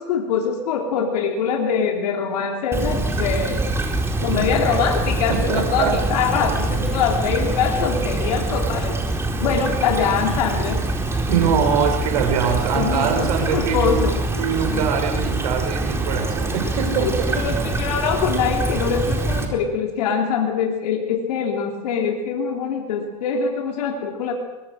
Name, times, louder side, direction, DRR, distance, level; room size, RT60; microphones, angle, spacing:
voice 1, 0.0-3.6 4.2-9.0 9.4-10.8 12.7-14.2 14.7-14.8 17.0-24.3, left 6 dB, 80° left, 2 dB, 3.1 m, -23 dB
Stream / Trickle dribble, 2.7-19.5, right 2 dB, 15° right, 4.3 m, -24 dB
voice 2, 5.3-5.9 11.3-14.1 14.4-17.6, right 7 dB, 80° right, 3 dB, 6.3 m, -23 dB
23.5 x 21.0 x 6.4 m, 1.1 s
hypercardioid pair, 105°, 20 cm